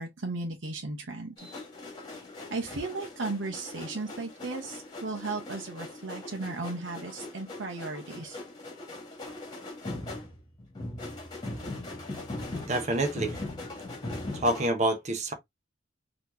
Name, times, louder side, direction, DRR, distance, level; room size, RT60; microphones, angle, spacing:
voice 1, 0.0-1.5 2.5-8.4, right 3 dB, 70° right, 0.9 m, -35 dB
sound 1, 1.4-14.7, left 2 dB, 20° left, 1.6 m, -40 dB
voice 2, 12.6-13.4 14.4-15.3, right 1 dB, 35° right, 0.9 m, -27 dB
4.2 x 2.9 x 2.6 m
head